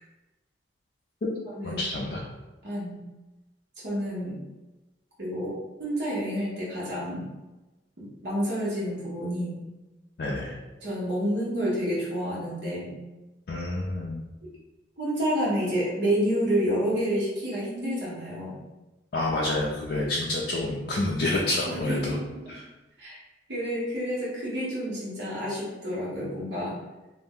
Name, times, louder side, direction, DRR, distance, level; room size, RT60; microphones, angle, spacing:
voice 1, 1.6-2.2 10.2-10.5 13.5-14.2 19.1-22.2 22.5-22.6, left 2 dB, 55° left, -4 dB, 0.4 m, -28 dB
voice 2, 2.6-3.0 3.8-4.4 5.2-7.3 8.0-9.6 10.8-12.9 15.0-18.6 21.7-22.1 23.0-23.2 23.5-26.8, equal, 70° right, -6 dB, 0.9 m, -29 dB
2.5 x 2.0 x 3.5 m, 1.1 s
head